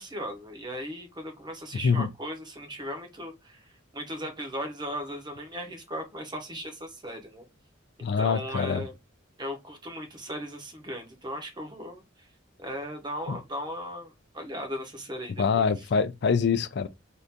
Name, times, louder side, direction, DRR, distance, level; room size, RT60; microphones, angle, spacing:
voice 1, 0.0-7.4 8.2-8.9 9.4-12.3 12.6-15.7, equal, 20° right, 0.8 m, -37 dB
voice 2, 8.0-8.8 13.3-13.4 15.4-16.9, left 5 dB, 55° left, 0.4 m, -25 dB
2.7 x 2.5 x 3.4 m
head